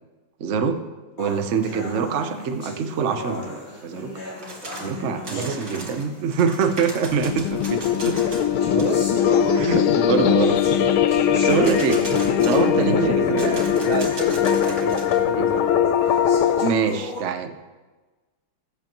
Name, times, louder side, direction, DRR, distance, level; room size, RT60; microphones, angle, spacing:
voice 1, 0.4-0.8 1.2-4.1 4.8-8.3 9.5-10.6 11.1-12.0 12.5-13.6 15.4-15.5 16.6-17.5, right 6 dB, 85° right, 6 dB, 0.6 m, -24 dB
sound 1, 1.2-6.3 7.2-7.3 8.1-13.3 13.8-13.9 14.4-14.5 15.2-15.3 16.0-17.2, left 1 dB, 30° left, 3.2 m, -37 dB
sound 2, 4.4-5.0 5.2-8.5 8.8-8.9 11.4-12.8 13.4-15.2, right 2 dB, 35° right, 1.9 m, -37 dB
voice 2, 5.3-5.6 8.6-9.2 12.1-12.3 12.9-13.5 13.8-15.9, right 4 dB, 70° right, 3 dB, 2.0 m, -29 dB
sound 3, 7.1-16.7, left 9 dB, 75° left, 1.4 m, -20 dB
19.0 x 8.3 x 3.0 m, 1.2 s
omnidirectional pair, 2.4 m